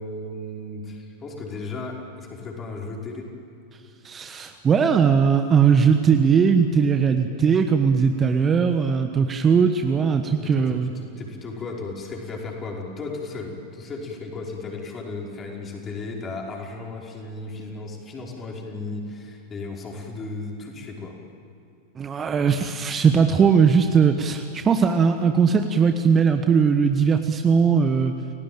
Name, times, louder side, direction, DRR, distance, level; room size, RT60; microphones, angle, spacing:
voice 1, 0.0-3.3 10.4-21.2, left 3 dB, 25° left, -1 dB, 5.4 m, -35 dB
voice 2, 4.0-10.9 22.0-28.1, right 6 dB, 20° right, 7 dB, 1.3 m, -19 dB
30.0 x 18.5 x 9.1 m, 2.7 s
figure-of-eight pair, 90°, 0 cm